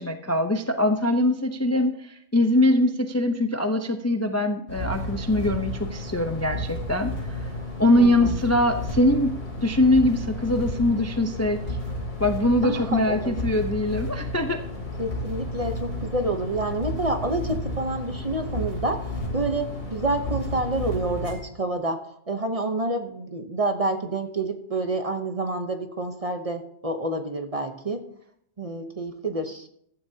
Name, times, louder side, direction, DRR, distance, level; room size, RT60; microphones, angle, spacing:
voice 1, 0.0-7.1 7.8-9.3 9.6-11.6 12.2-14.6, left 1 dB, 20° left, 6 dB, 0.5 m, -22 dB
sound 1, 4.7-21.3, left 1 dB, 65° left, 4.9 m, -32 dB
voice 2, 8.0-8.4 12.6-13.5 15.0-19.1 19.3-28.1 28.6-29.7, right 2 dB, 35° right, 6 dB, 0.8 m, -28 dB
15.0 x 11.5 x 2.8 m, 0.71 s
omnidirectional pair, 1.3 m